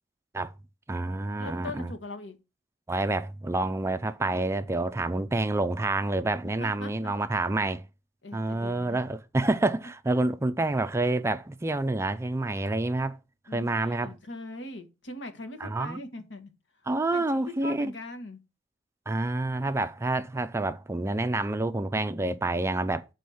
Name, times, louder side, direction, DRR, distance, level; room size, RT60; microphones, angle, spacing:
voice 1, 0.9-1.9 2.9-7.8 8.3-13.2 13.5-14.1 15.6-16.0 16.9-17.9 19.1-23.1, right 2 dB, 15° right, 0.4 m, -28 dB
voice 2, 1.4-2.4 6.6-7.1 8.2-9.0 13.5-16.5 17.1-18.4, left 2 dB, 80° left, 1.3 m, -41 dB
6.9 x 4.2 x 6.3 m
head